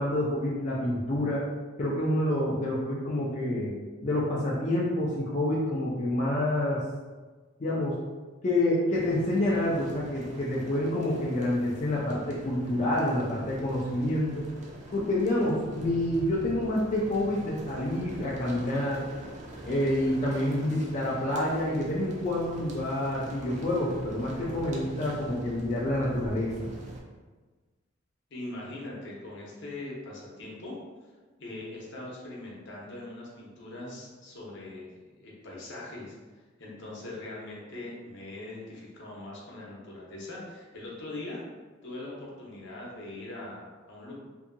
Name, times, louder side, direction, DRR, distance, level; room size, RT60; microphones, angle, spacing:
voice 1, 0.0-1.5 1.8-3.7 4.0-6.8 7.6-8.0 8.4-14.5 14.9-19.0 19.6-26.7, left 1 dB, 35° left, -6 dB, 0.4 m, -28 dB
sound 1, 8.9-27.0, right 1 dB, 40° right, 0.4 m, -43 dB
voice 2, 28.3-30.8 31.4-41.4 41.8-44.1, left 2 dB, 65° left, -4 dB, 0.8 m, -41 dB
2.7 x 2.6 x 2.5 m, 1.3 s
head